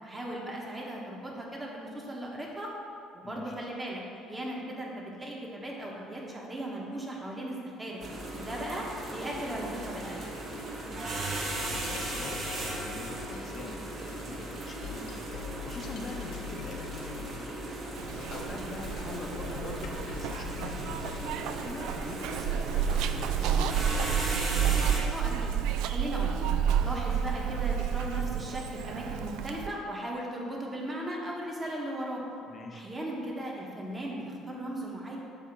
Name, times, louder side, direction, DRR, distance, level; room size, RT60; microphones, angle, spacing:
voice 1, 0.0-2.7 3.1-4.0 4.3-8.0 8.4-10.2 25.1-25.5 25.9-26.4 26.8-32.2 32.7-35.2, right 1 dB, 15° right, -2 dB, 1.2 m, -37 dB
voice 2, 3.2-3.6 10.8-11.2 11.6-17.6 17.9-21.3 21.6-24.2 32.5-32.8, left 3 dB, 35° left, 2 dB, 0.7 m, -44 dB
sound 1, 8.0-25.0, right 1 dB, 40° right, 1.2 m, -37 dB
sound 2, 11.6-13.6 14.1-22.4, left 9 dB, 70° left, 0.8 m, -44 dB
Zipper (clothing), 18.0-29.7, right 8 dB, 80° right, 0.3 m, -30 dB
8.1 x 2.9 x 5.9 m, 2.5 s
cardioid pair, 125°, 0 cm